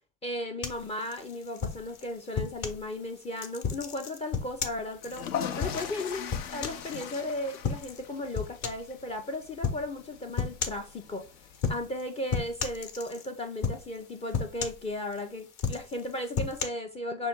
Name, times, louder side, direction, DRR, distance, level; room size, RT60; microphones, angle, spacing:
voice 1, 0.2-5.3 5.5-6.2 6.5-11.3 11.7-17.3, left 1 dB, 15° left, 0.4 m, -35 dB
sound 1, 0.6-2.8 3.4-7.2 7.6-8.0 8.3-8.9 9.6-9.9 10.4-10.9 11.5-12.0 12.3-13.3 13.6-14.0 14.3-15.2 15.5-16.6, left 5 dB, 40° left, 0.9 m, -33 dB
sound 2, 5.0-11.8, left 8 dB, 70° left, 0.7 m, -40 dB
5.7 x 2.3 x 3.6 m
figure-of-eight pair, 75°, 44 cm